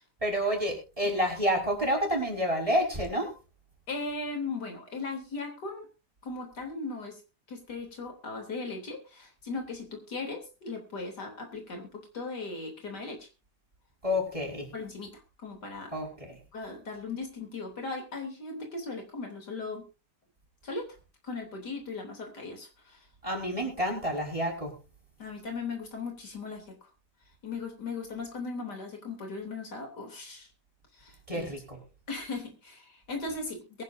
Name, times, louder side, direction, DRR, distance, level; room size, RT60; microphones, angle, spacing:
voice 1, 0.2-3.3 14.0-14.7 15.9-16.4 23.2-24.7 31.3-31.8, equal, 20° right, 0 dB, 5.3 m, -29 dB
voice 2, 3.9-5.9 6.2-7.2 7.5-13.3 14.7-15.9 16.5-19.8 20.6-21.0 21.2-23.1 25.2-26.9 27.4-30.5 30.9-31.5 32.1-33.8, left 3 dB, 75° left, 3 dB, 3.8 m, -38 dB
22.5 x 11.0 x 2.7 m, 0.30 s
omnidirectional pair, 1.8 m